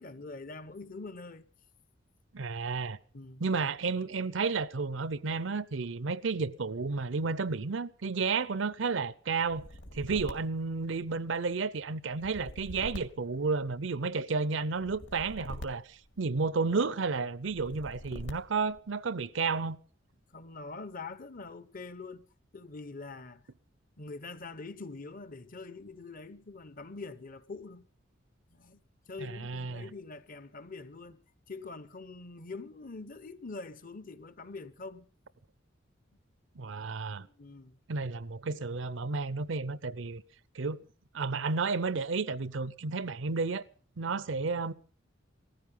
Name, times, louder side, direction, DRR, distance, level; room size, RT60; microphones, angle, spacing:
voice 1, 0.0-1.4 3.1-3.5 20.3-22.3 22.5-23.4 24.0-27.9 28.5-28.8 29.1-31.2 31.5-35.1 37.2-37.8 44.3-44.6, left 3 dB, 45° left, 0.8 m, -44 dB
voice 2, 2.3-3.0 3.4-9.7 9.9-19.8 29.2-29.9 36.6-37.3 37.9-40.2 40.5-40.8 41.1-43.6 44.0-44.7, right 4 dB, 70° right, 0.7 m, -32 dB
sound 1, 9.4-11.4 12.1-14.1 14.8-16.7 17.4-18.8, equal, 70° left, 2.3 m, -45 dB
17.0 x 14.5 x 5.5 m
head